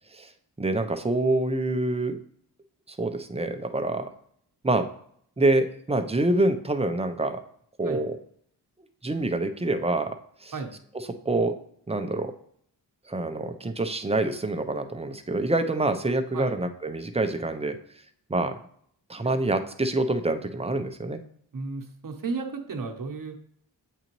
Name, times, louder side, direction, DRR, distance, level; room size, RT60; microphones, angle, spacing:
voice 1, 0.6-2.2 2.9-4.1 4.6-4.9 5.4-7.4 7.8-8.2 9.0-10.1 10.4-10.5 11.3-11.5 11.9-12.3 13.1-17.8 18.3-18.6 19.1-21.2, right 2 dB, 15° right, 8 dB, 0.5 m, -26 dB
voice 2, 21.5-23.4, right 4 dB, 50° right, 3 dB, 0.9 m, -34 dB
8.2 x 3.9 x 3.0 m, 0.65 s
wide cardioid pair, 90°, 43 cm